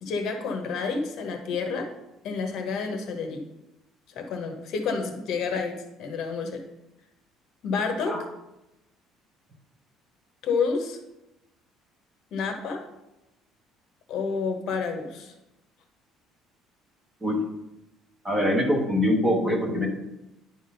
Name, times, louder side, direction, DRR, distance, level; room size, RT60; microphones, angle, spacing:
voice 1, 0.0-1.9 2.2-3.4 4.1-6.6 7.6-8.2 10.4-11.0 12.3-12.8 14.1-15.3, left 5 dB, 50° left, 4 dB, 1.1 m, -29 dB
voice 2, 18.2-19.9, left 1 dB, 10° right, 1 dB, 0.9 m, -23 dB
10.0 x 3.7 x 5.5 m, 0.93 s
cardioid pair, 180°, 0 cm